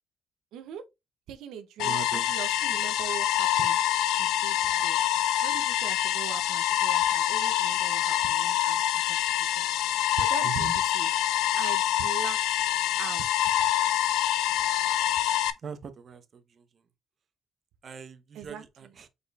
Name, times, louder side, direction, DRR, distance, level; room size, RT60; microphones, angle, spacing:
voice 1, 0.5-0.8 1.3-3.8 4.2-5.0 5.4-9.7 10.2-11.1 11.5-12.4 13.0-13.7 18.3-19.0, right 8 dB, 90° right, 0.6 m, -41 dB
sound 1, 1.8-15.5, left 12 dB, 90° left, 0.4 m, -26 dB
voice 2, 1.8-2.3 10.4-10.7 15.6-16.4 17.8-19.1, right 6 dB, 50° right, 0.7 m, -40 dB
5.0 x 4.1 x 2.3 m
cardioid pair, 90°, 0 cm